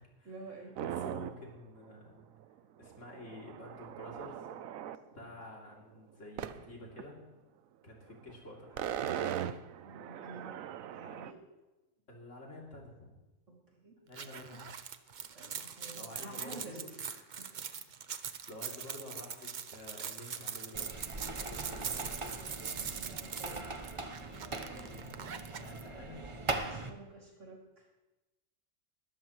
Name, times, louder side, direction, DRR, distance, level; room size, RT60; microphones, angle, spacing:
voice 1, 0.2-0.8 9.8-10.6 10.9-11.4 13.5-13.6 13.8-14.0 15.3-17.5 21.7-21.8 22.4-23.9 26.6-27.9, right 3 dB, 65° right, -2 dB, 3.0 m, -50 dB
voice 2, 0.8-2.2 2.8-4.5 5.1-7.2 7.8-8.9 12.1-13.1 14.1-14.7 15.9-16.9 18.1-21.1 21.4-22.0 24.7-25.2 25.5-26.2, left 1 dB, 65° left, -2 dB, 3.3 m, -49 dB
sound 1, 0.8-1.5 1.9-2.0 2.2-5.0 6.4-6.6 7.0-7.1 8.2-8.4 8.6-11.3, right 10 dB, 85° right, 1.1 m, -39 dB
Purse - rummaging for change and zipping up., 14.1-25.8, right 7 dB, 45° right, 0.7 m, -42 dB
Door closing slowly, 20.7-26.9, right 2 dB, 25° right, 0.9 m, -40 dB
20.5 x 13.0 x 3.1 m, 1.1 s
omnidirectional pair, 1.4 m